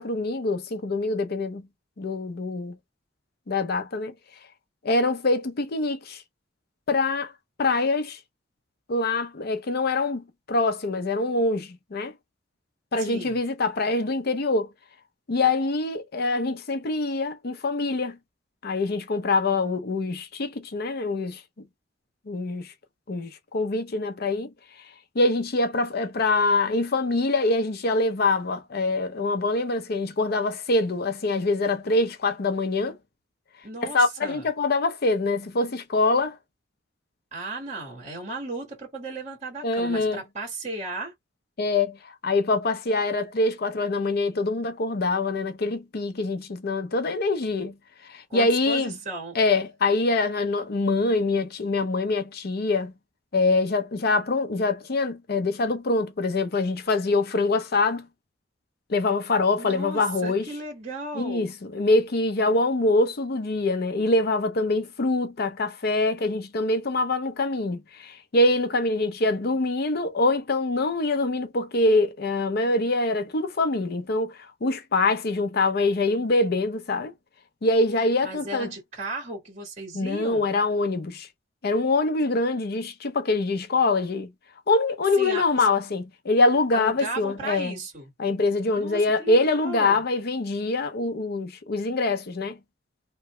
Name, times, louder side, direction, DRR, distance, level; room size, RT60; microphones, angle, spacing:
voice 1, 0.0-1.7 2.0-2.8 3.5-4.1 4.8-6.2 6.9-7.3 7.6-8.2 8.9-12.1 12.9-14.7 15.3-18.2 18.6-21.4 22.3-22.7 23.1-24.5 25.1-33.0 33.8-36.4 39.6-40.2 41.6-47.8 48.0-48.9 49.3-52.9 53.3-58.1 58.9-60.5 61.1-77.1 77.6-78.7 79.9-81.3 81.6-84.3 84.7-87.8 88.2-92.6, left 2 dB, 55° left, 0.6 m, -24 dB
voice 2, 13.0-13.4 33.6-34.4 37.3-41.1 48.3-49.4 59.6-61.5 78.2-80.5 85.2-85.4 86.7-88.1 88.8-90.0, right 2 dB, 35° right, 1.6 m, -35 dB
2.9 x 2.2 x 3.0 m
head